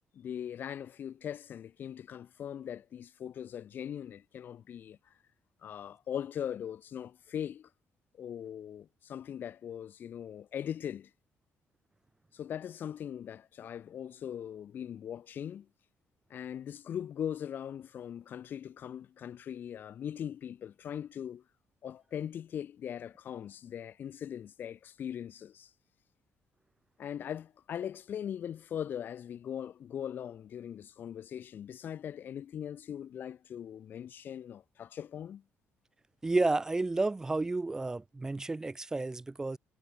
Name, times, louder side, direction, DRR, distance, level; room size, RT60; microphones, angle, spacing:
voice 1, 0.1-5.0 5.6-7.7 8.2-11.1 12.3-15.7 16.3-21.4 21.8-25.7 27.0-35.4, left 9 dB, 45° left, 0.5 m, -40 dB
voice 2, 36.2-39.6, right 3 dB, 10° right, 0.7 m, -31 dB
cardioid pair, 165°, 5 cm